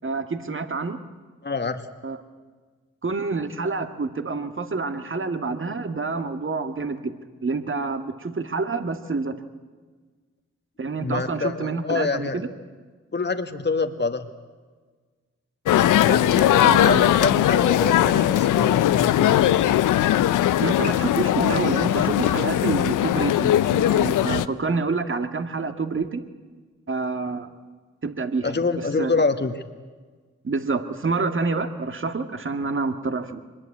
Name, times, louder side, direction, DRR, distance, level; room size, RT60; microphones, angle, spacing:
voice 1, 0.0-1.0 2.0-2.2 3.0-7.2 7.4-9.4 10.8-12.5 16.6-17.1 20.6-26.2 26.9-27.5 28.0-28.6 29.0-29.2 30.4-33.4, right 4 dB, 40° right, 8 dB, 1.9 m, -27 dB
voice 2, 1.4-1.8 11.0-12.4 13.1-14.3 16.1-19.6 28.4-29.5, left 4 dB, 35° left, 7 dB, 1.6 m, -26 dB
sound 1, 15.7-24.5, left 12 dB, 90° left, 0.6 m, -19 dB
23.5 x 21.0 x 8.5 m, 1.4 s
supercardioid pair, 45°, 30 cm